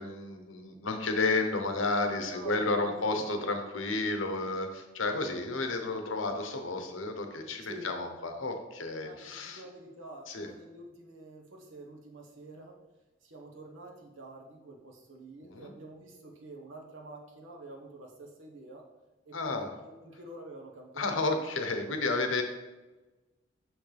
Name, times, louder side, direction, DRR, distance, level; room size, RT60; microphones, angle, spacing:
voice 1, 0.0-9.6 10.3-10.5 15.4-15.7 19.3-19.7 21.0-22.4, left 3 dB, 80° left, 5 dB, 0.9 m, -32 dB
voice 2, 2.1-3.4 7.6-7.9 9.0-12.8 13.2-18.8 19.2-21.3 21.9-22.0, right 2 dB, 85° right, 0 dB, 1.3 m, -47 dB
6.4 x 6.3 x 3.4 m, 1.2 s
head